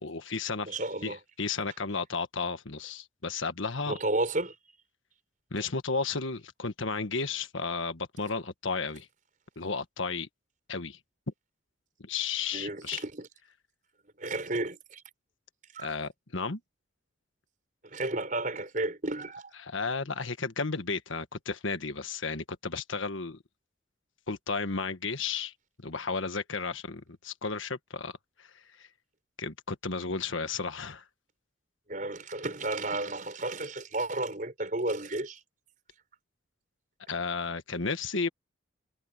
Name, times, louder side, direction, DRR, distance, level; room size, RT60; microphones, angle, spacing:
voice 1, 0.0-4.0 5.5-9.1 9.5-10.3 10.7-11.0 12.0-13.0 15.8-16.6 19.6-23.4 24.3-25.5 25.8-28.1 28.4-28.9 29.4-31.0 37.1-38.3, left 4 dB, 80° left, 1.5 m, -33 dB
voice 2, 0.7-1.2 3.9-4.6 12.5-13.3 14.2-15.0 15.7-15.9 17.8-19.5 31.9-35.4, right 2 dB, 40° right, 5.3 m, -32 dB
head